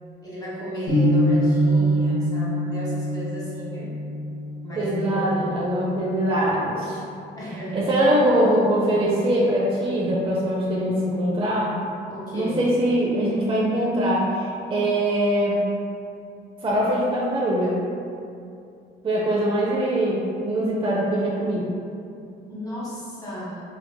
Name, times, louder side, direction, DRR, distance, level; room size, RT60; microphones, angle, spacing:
voice 1, 0.2-3.9 4.6-5.3 7.4-7.9 12.1-12.7 22.5-23.6, right 1 dB, 20° left, -8 dB, 1.4 m, -33 dB
sound 1, 0.9-6.9, equal, 70° left, 1.3 m, -25 dB
voice 2, 4.8-7.0 7.7-11.8 12.3-15.7 16.6-17.8 19.0-21.6, right 1 dB, 25° right, -5 dB, 0.6 m, -22 dB
4.5 x 2.5 x 2.2 m, 2.5 s
cardioid pair, 90°, 20 cm